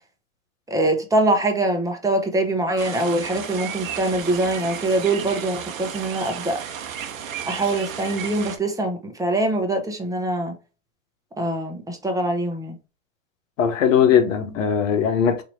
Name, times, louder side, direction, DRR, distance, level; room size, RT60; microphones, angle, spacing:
voice 1, 0.7-6.6 7.5-10.5 11.4-12.8, right 2 dB, 10° right, 1.0 m, -23 dB
sound 1, 2.8-8.6, right 8 dB, 85° right, 0.7 m, -33 dB
voice 2, 13.6-15.4, left 8 dB, 75° left, 1.0 m, -19 dB
4.8 x 2.8 x 2.7 m
hypercardioid pair, 90°, 39 cm